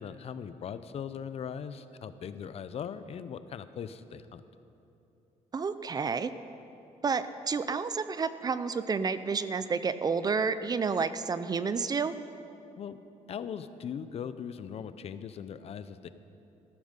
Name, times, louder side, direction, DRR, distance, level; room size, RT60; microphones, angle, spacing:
voice 1, 0.0-4.4 12.8-13.0 13.3-16.1, left 7 dB, 50° left, 12 dB, 0.6 m, -39 dB
voice 2, 5.5-6.3 7.0-12.1, right 5 dB, 30° right, 13 dB, 0.5 m, -30 dB
14.5 x 13.5 x 5.2 m, 2.8 s
cardioid pair, 115°, 13 cm